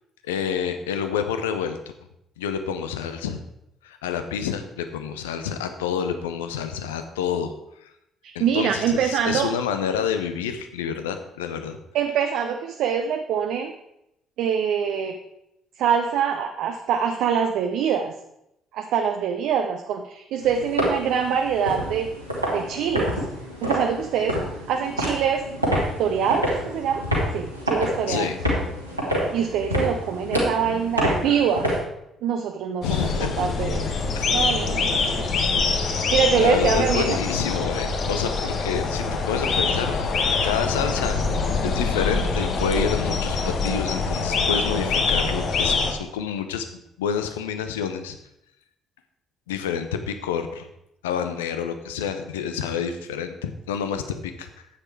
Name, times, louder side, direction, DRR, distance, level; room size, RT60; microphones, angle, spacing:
voice 1, 0.3-1.8 2.4-3.4 3.8-7.5 8.3-11.8 28.1-28.4 32.8-33.5 34.1-34.4 36.4-40.0 40.4-41.2 41.6-46.7 47.0-48.2 49.5-50.7 51.0-54.5, left 7 dB, 75° left, 8 dB, 0.8 m, -28 dB
voice 2, 8.2-9.5 11.9-13.7 14.4-15.1 15.8-18.1 18.7-22.1 22.5-23.2 23.6-24.4 24.7-25.4 26.0-27.0 27.3-28.3 29.2-31.6 32.2-33.9 34.3-35.3 35.9-37.2, right 7 dB, 60° right, 5 dB, 0.7 m, -24 dB
sound 1, 20.4-31.8, equal, 90° right, 2.1 m, -27 dB
sound 2, 32.8-45.9, left 4 dB, 50° left, 1.4 m, -24 dB
10.0 x 8.6 x 4.7 m, 0.82 s
figure-of-eight pair, 45°, 0 cm